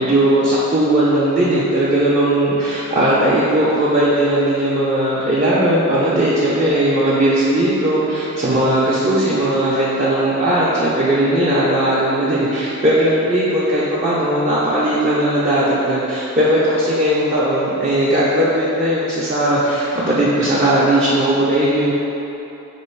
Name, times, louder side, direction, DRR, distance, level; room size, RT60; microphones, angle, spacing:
voice 1, 0.0-21.9, right 1 dB, 30° right, -9 dB, 0.4 m, -17 dB
3.4 x 3.0 x 4.4 m, 2.9 s
head